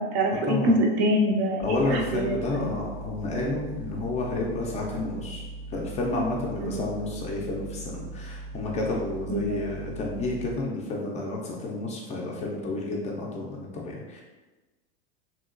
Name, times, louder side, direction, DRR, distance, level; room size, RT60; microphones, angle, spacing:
voice 1, 0.0-2.7 6.6-6.8 9.3-9.6, equal, 40° right, 1 dB, 0.4 m, -25 dB
voice 2, 1.6-5.4 5.7-14.2, left 2 dB, 25° left, -2 dB, 0.4 m, -30 dB
sound 1, 1.6-10.5, right 3 dB, 65° right, 0.8 m, -40 dB
2.9 x 2.8 x 2.4 m, 1.2 s
supercardioid pair, 130°, 30 cm